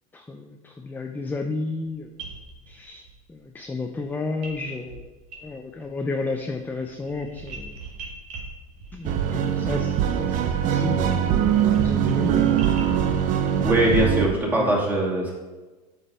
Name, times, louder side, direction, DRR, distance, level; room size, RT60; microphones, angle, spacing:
voice 1, 0.1-2.1 2.7-3.0 3.3-5.1 5.4-7.8 8.9-11.4 11.8-12.7 14.6-14.8, left 3 dB, 10° left, 4 dB, 0.5 m, -32 dB
sound 1, 1.8-1.9 2.2-3.1 4.4-4.6 4.9-5.9 6.2-13.2, right 3 dB, 70° right, 1.9 m, -41 dB
sound 2, 9.0-14.3, right 9 dB, 45° right, 0.7 m, -22 dB
voice 2, 13.6-15.3, right 1 dB, 10° right, -4 dB, 2.5 m, -21 dB
8.5 x 5.2 x 4.4 m, 1.2 s
supercardioid pair, 110°, 18 cm